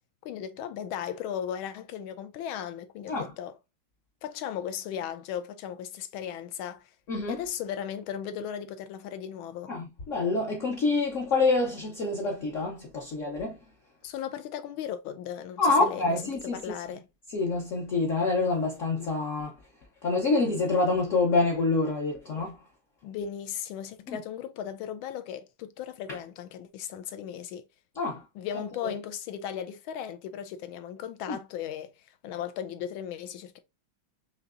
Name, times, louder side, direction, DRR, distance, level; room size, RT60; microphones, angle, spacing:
voice 1, 0.2-3.6 4.2-6.9 7.3-9.7 14.0-17.1 23.0-27.6 28.3-33.6, left 9 dB, 80° left, 1.4 m, -36 dB
voice 2, 9.7-13.6 15.6-16.6 17.3-19.5 20.0-22.6 24.1-24.2 28.0-28.2 28.8-28.9 31.3-31.4, left 3 dB, 55° left, 0.9 m, -26 dB
5.7 x 2.8 x 2.4 m
omnidirectional pair, 2.2 m